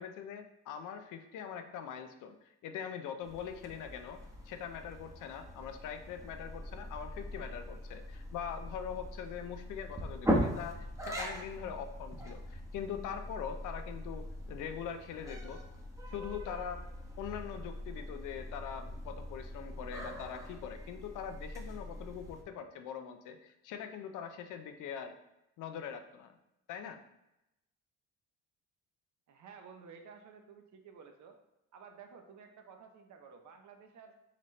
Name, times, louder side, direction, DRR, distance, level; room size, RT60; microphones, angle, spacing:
voice 1, 0.0-2.4 2.6-15.6 16.1-16.8 17.2-25.2 25.6-26.4 26.7-27.0, left 8 dB, 85° left, 7 dB, 0.6 m, -42 dB
sound 1, 3.2-22.4, equal, 10° right, 0.9 m, -40 dB
voice 2, 29.3-31.4 31.7-34.1, right 6 dB, 70° right, 5 dB, 0.8 m, -53 dB
4.2 x 4.0 x 3.1 m, 0.90 s
cardioid pair, 90°, 30 cm